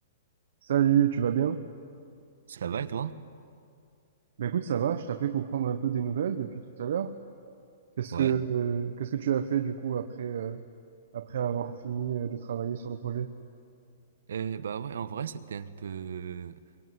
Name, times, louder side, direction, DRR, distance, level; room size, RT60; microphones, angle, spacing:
voice 1, 0.6-1.7 4.4-7.2 8.0-10.6 11.1-13.3, right 9 dB, 60° right, 7 dB, 1.1 m, -29 dB
voice 2, 2.5-3.1 8.1-8.4 14.3-16.6, right 8 dB, 80° right, 12 dB, 1.2 m, -35 dB
24.5 x 23.0 x 9.6 m, 2.3 s
hypercardioid pair, 175°, 0 cm